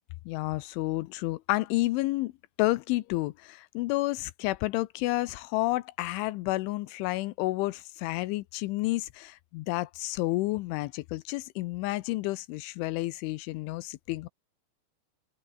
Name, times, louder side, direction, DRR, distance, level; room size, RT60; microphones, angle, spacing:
voice 1, 0.3-2.3 2.6-14.3, left 19 dB, 85° left, 3.2 m, -30 dB
open air
omnidirectional pair, 5.5 m